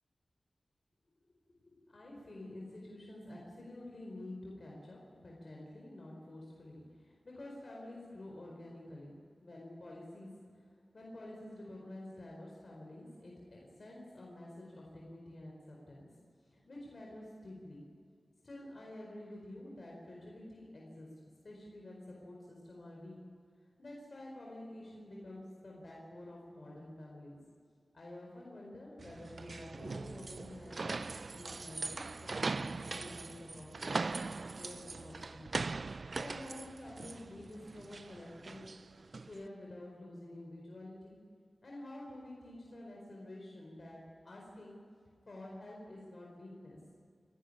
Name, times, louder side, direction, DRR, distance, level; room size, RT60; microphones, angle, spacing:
voice 1, 1.7-10.6 10.9-16.1 16.5-17.9 18.4-21.1 21.4-23.2 23.8-27.4 27.9-31.0 31.3-38.7 39.2-41.2 41.6-44.8 45.3-46.8, left 1 dB, 55° left, -2 dB, 4.7 m, -49 dB
sound 1, 29.0-39.4, right 3 dB, 55° right, 0.5 m, -41 dB
29.0 x 12.0 x 9.8 m, 2.1 s
wide cardioid pair, 90°, 0 cm